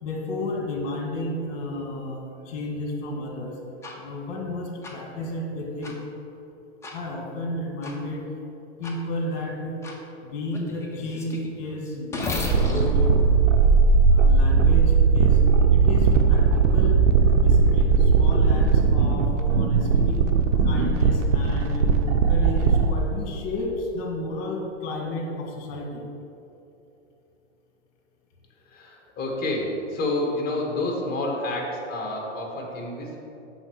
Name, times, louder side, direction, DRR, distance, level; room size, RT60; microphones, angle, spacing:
voice 1, 0.0-3.6 4.0-6.0 6.9-8.2 8.8-9.8 10.2-13.1 14.1-15.4 15.7-17.0 17.4-20.2 20.6-21.9 22.3-26.0, left 2 dB, 55° left, 0 dB, 1.7 m, -32 dB
sound 1, 3.8-3.9 4.8-4.9 5.8-5.9 6.8-7.0 7.8-7.9 8.8-8.9 9.8-10.0 10.5-14.4, left 2 dB, 5° left, 0.6 m, -33 dB
sound 2, 12.5-22.9, right 5 dB, 75° right, 0.8 m, -18 dB
voice 2, 28.7-33.2, left 2 dB, 25° left, 0 dB, 1.5 m, -29 dB
6.3 x 4.3 x 6.3 m, 2.8 s
hypercardioid pair, 130°, 38 cm